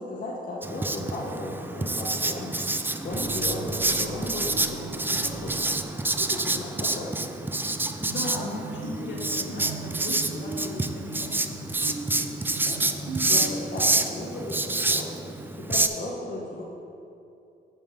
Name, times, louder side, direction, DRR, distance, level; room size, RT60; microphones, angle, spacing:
voice 1, 0.0-2.5 3.0-5.8 6.2-7.3 12.7-15.1 15.6-16.6, left 2 dB, 45° left, -5 dB, 1.1 m, -36 dB
Writing, 0.6-15.9, right 2 dB, 10° right, 0.4 m, -28 dB
sound 1, 3.1-6.9, right 3 dB, 40° right, 0.8 m, -40 dB
voice 2, 8.0-11.6, left 1 dB, 65° left, -3 dB, 1.9 m, -37 dB
sound 2, 8.1-14.0, right 3 dB, 85° right, 1.5 m, -38 dB
7.8 x 5.2 x 5.1 m, 2.6 s
cardioid pair, 90°, 20 cm